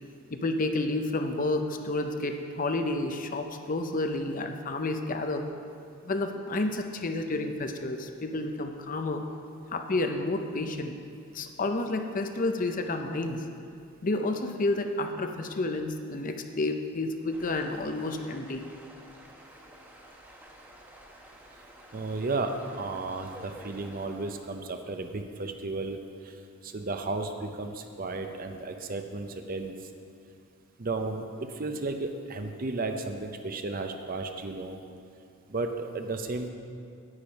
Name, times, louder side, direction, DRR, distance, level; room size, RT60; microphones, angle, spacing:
voice 1, 0.3-5.5 6.0-9.2 9.7-11.0 11.3-13.5 14.0-18.7, left 2 dB, 40° left, 6 dB, 0.6 m, -30 dB
sound 1, 17.3-24.6, right 1 dB, 10° right, 0.9 m, -51 dB
voice 2, 21.9-26.0 26.2-26.3 26.6-29.7 30.8-31.2 31.6-34.8 35.5-36.5, right 3 dB, 40° right, 6 dB, 0.6 m, -33 dB
9.7 x 9.0 x 5.2 m, 2.4 s
head